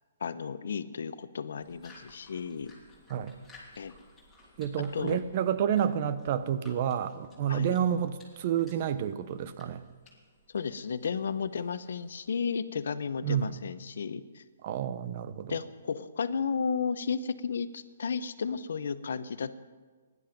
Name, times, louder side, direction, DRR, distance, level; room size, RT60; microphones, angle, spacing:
voice 1, 0.2-2.7 3.8-3.9 4.9-5.2 7.5-7.7 10.5-14.4 15.5-19.5, left 6 dB, 70° left, 13 dB, 0.7 m, -33 dB
sound 1, 1.6-12.5, left 2 dB, 5° left, 3.1 m, -58 dB
voice 2, 4.6-9.8 13.2-13.6 14.6-15.6, right 9 dB, 40° right, 13 dB, 0.8 m, -29 dB
16.0 x 11.0 x 5.2 m, 1.4 s
hypercardioid pair, 150°, 0 cm